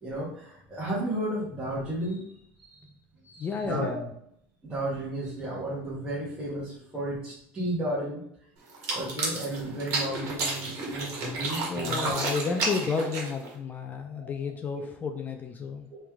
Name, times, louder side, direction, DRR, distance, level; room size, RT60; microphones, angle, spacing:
voice 1, 0.0-2.2 2.6-2.9 3.2-4.0 4.6-8.2 8.9-12.1 12.5-12.6 14.1-14.3 14.7-14.8, right 1 dB, 15° right, -8 dB, 1.3 m, -33 dB
voice 2, 3.4-4.1 11.7-15.9, left 5 dB, 25° left, 6 dB, 0.4 m, -31 dB
sound 1, 8.7-13.6, right 3 dB, 55° right, 1.5 m, -31 dB
3.2 x 3.1 x 3.5 m, 0.71 s
supercardioid pair, 125°, 6 cm